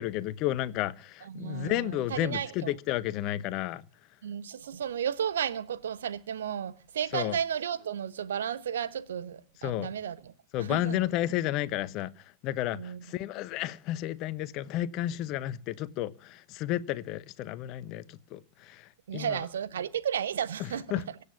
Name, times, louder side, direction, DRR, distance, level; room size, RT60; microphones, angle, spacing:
voice 1, 0.0-3.8 7.1-7.4 9.6-9.9 10.5-19.4 20.6-21.0, left 13 dB, 40° left, 0.9 m, -32 dB
voice 2, 1.3-2.7 4.2-10.3 10.6-11.0 12.7-13.0 19.1-20.8, right 8 dB, 65° right, 1.1 m, -33 dB
23.5 x 8.3 x 7.1 m
figure-of-eight pair, 90°, 0 cm